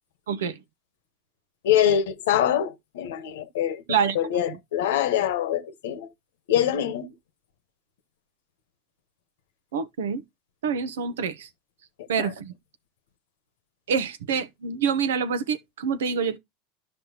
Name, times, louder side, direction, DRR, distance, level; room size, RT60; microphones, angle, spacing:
voice 1, 1.6-3.8 4.1-6.1 6.5-7.1 12.2-12.3, left 10 dB, 75° left, 1.0 m, -24 dB
voice 2, 9.7-10.2 10.6-11.5 12.1-12.5 13.9-16.4, right 6 dB, 80° right, 0.8 m, -26 dB
12.5 x 5.2 x 2.8 m
hypercardioid pair, 85°, 0 cm